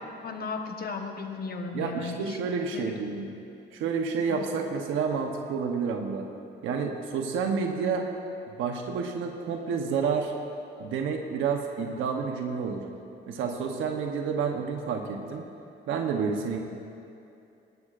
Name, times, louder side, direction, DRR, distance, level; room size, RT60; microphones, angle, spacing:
voice 1, 0.2-2.4 2.7-2.8 4.3-4.4, left 4 dB, 50° left, 4 dB, 1.2 m, -35 dB
voice 2, 1.7-3.3 3.7-6.3 6.6-8.1 8.6-10.3 10.8-12.9 13.3-15.4 15.9-16.6, right 5 dB, 90° right, 3 dB, 1.0 m, -29 dB
19.0 x 13.0 x 2.5 m, 2.7 s
cardioid pair, 90°, 20 cm